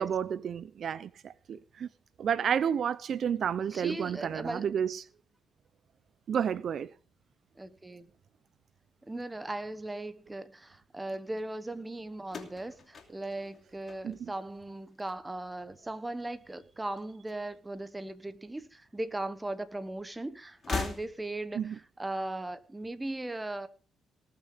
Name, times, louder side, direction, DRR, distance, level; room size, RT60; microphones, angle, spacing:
voice 1, 0.0-1.9 2.2-5.0 6.3-6.9 14.0-14.3 21.6-21.8, right 8 dB, 60° right, 0.5 m, -31 dB
voice 2, 3.7-4.7 7.5-8.1 9.0-23.7, right 2 dB, 15° right, 1.2 m, -38 dB
sound 1, 12.2-14.6 14.9-15.5 16.5-17.5 17.8-17.9 19.0-19.1 20.5-21.5, left 5 dB, 50° left, 2.9 m, -40 dB
19.0 x 6.7 x 5.2 m
cardioid pair, 90°, 0 cm